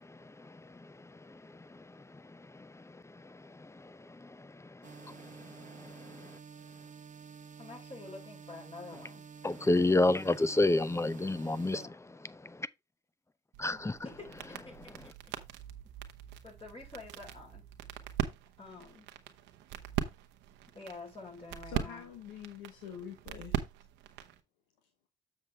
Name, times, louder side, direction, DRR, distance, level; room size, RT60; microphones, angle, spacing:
voice 1, 0.0-6.4 9.4-11.8 12.4-12.7 13.6-14.0, left 2 dB, 15° left, 0.8 m, -32 dB
sound 1, 4.8-11.9, right 6 dB, 45° right, 1.0 m, -50 dB
voice 2, 7.6-9.2 11.7-11.9 14.0-15.3 16.4-17.6 18.6-19.1 20.7-22.1, left 3 dB, 30° left, 4.7 m, -48 dB
sound 2, 13.5-24.4, right 11 dB, 85° right, 0.9 m, -41 dB
voice 3, 21.7-23.6, left 9 dB, 90° left, 1.1 m, -45 dB
7.3 x 6.5 x 3.4 m
hypercardioid pair, 45°, 18 cm